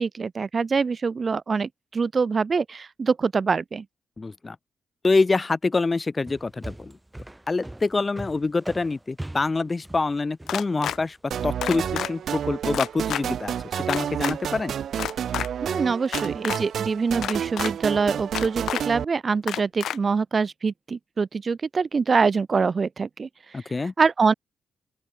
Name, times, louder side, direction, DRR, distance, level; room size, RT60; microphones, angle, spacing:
voice 1, 0.0-3.8 15.6-23.3 24.0-24.3, right 5 dB, 40° right, 1.6 m, -24 dB
voice 2, 4.2-4.6 5.0-6.9 7.5-11.2 11.4-14.7 23.5-23.9, left 3 dB, 25° left, 0.5 m, -26 dB
sound 1, 6.3-12.5, right 1 dB, 10° right, 3.1 m, -40 dB
sound 2, 10.5-11.0 11.6-12.1 12.7-13.2 13.9-14.3 14.9-15.5 16.1-16.6 17.2-17.7 18.3-18.8 19.5-20.0, left 10 dB, 90° left, 0.4 m, -29 dB
sound 3, 11.3-19.0, right 9 dB, 75° right, 0.6 m, -30 dB
open air
cardioid pair, 105°, 0 cm